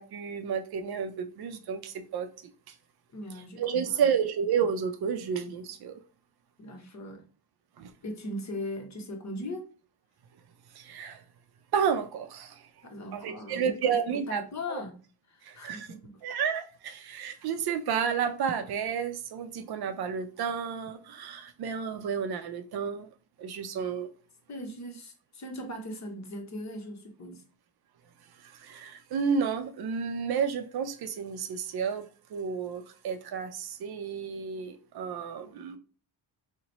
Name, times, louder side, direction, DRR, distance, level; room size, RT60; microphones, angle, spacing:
voice 1, 0.0-2.3 3.6-6.0 7.8-7.9 10.8-11.2 11.7-12.6 13.1-14.4 15.5-15.9 16.2-23.1 23.4-24.1 28.4-35.8, right 7 dB, 60° right, 0.5 m, -31 dB
voice 2, 3.1-4.1 6.6-7.2 8.0-9.7 12.8-14.9 15.3-16.2 24.5-27.4, left 1 dB, 40° left, 0.9 m, -39 dB
2.9 x 2.1 x 3.9 m
cardioid pair, 105°, 44 cm